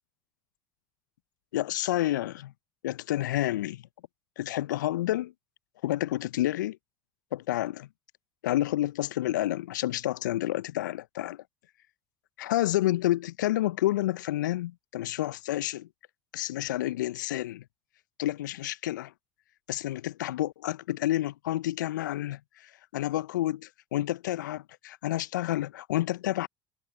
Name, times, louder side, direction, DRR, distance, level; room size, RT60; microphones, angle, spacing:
voice 1, 1.5-2.5 2.8-3.8 4.4-5.3 5.8-6.8 7.3-7.9 8.4-11.4 12.4-15.9 16.3-17.6 18.2-19.1 19.7-26.5, left 15 dB, 75° left, 0.7 m, -29 dB
figure-of-eight pair, 55°, 10 cm